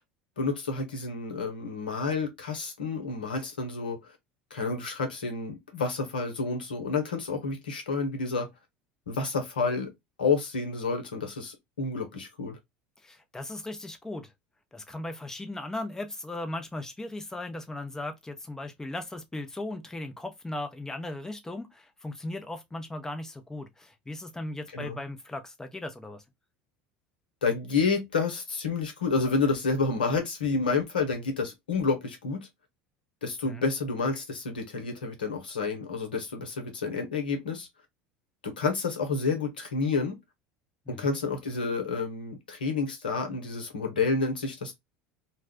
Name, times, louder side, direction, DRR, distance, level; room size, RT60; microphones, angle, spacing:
voice 1, 0.4-4.0 4.5-8.5 9.1-9.9 10.2-12.6 24.7-25.0 27.4-32.5 33.2-37.7 38.4-40.2 40.9-44.7, left 4 dB, 90° left, 0.9 m, -29 dB
voice 2, 13.0-14.3 14.7-26.2 33.4-33.7 40.9-41.2, left 2 dB, 10° left, 0.8 m, -37 dB
2.3 x 2.3 x 3.5 m
hypercardioid pair, 80°, 5 cm